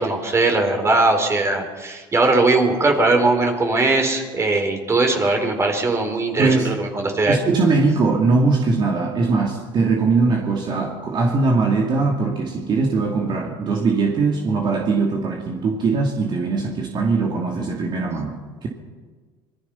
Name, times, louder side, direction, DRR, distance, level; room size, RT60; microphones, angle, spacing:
voice 1, 0.0-7.4, right 2 dB, 25° right, 4 dB, 4.2 m, -19 dB
voice 2, 6.4-6.7 7.2-18.7, right 3 dB, 40° right, 0 dB, 2.8 m, -21 dB
26.0 x 21.5 x 5.8 m, 1.4 s
supercardioid pair, 110°, 11 cm